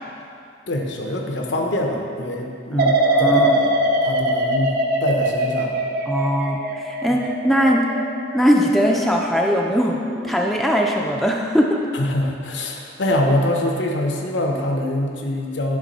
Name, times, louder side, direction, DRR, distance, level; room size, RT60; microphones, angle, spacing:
voice 1, 0.7-3.7 4.0-4.7 5.0-5.8 7.1-7.2 11.9-15.8, left 1 dB, 85° left, 1 dB, 0.8 m, -24 dB
voice 2, 2.7-3.6 6.1-7.9 8.3-10.0 10.2-11.8, equal, ahead, -1 dB, 0.3 m, -20 dB
sound 1, 2.8-9.7 10.1-10.6, right 1 dB, 60° right, 0.6 m, -22 dB
9.7 x 3.7 x 4.0 m, 2.5 s
head